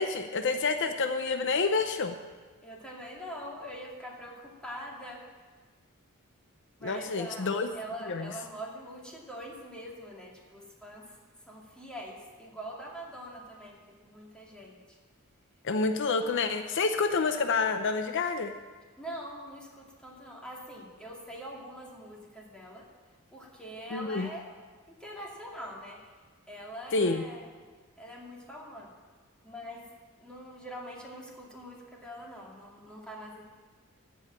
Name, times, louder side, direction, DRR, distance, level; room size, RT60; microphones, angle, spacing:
voice 1, 0.0-2.1 6.8-7.7 8.1-8.3 15.6-18.5 23.9-24.3 26.9-27.2, left 4 dB, 60° left, 7 dB, 0.6 m, -28 dB
voice 2, 2.6-5.3 6.8-11.2 11.4-15.0 19.0-22.9 23.3-24.5 24.9-26.1 26.5-27.5 28.0-29.0 29.4-29.9 30.2-33.4, equal, 5° left, -3 dB, 2.2 m, -43 dB
14.5 x 5.6 x 8.6 m, 1.4 s
head